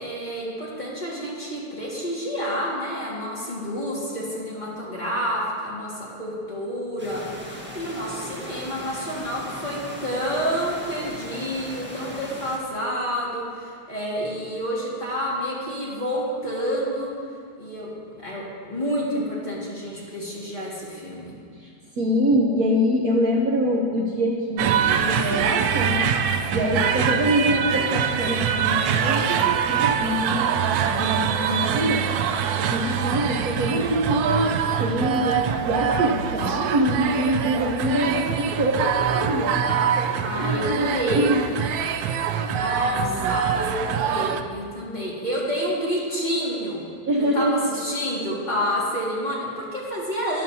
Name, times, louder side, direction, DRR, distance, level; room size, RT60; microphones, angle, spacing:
voice 1, 0.0-17.1 17.6-17.9 18.2-21.3 40.2-41.3 42.5-46.8 47.3-50.4, equal, 25° left, -6 dB, 2.0 m, -29 dB
sound 1, 7.0-12.6, equal, 5° right, 1.0 m, -38 dB
voice 2, 22.0-26.1 26.5-32.0 32.5-34.5 34.8-41.4 41.8-41.9 42.3-42.5 42.9-43.3 47.1-47.7, equal, 60° right, -1 dB, 1.2 m, -25 dB
sound 2, 24.6-44.4, right 8 dB, 80° right, 1.2 m, -24 dB
13.0 x 11.0 x 2.7 m, 2.3 s
omnidirectional pair, 2.1 m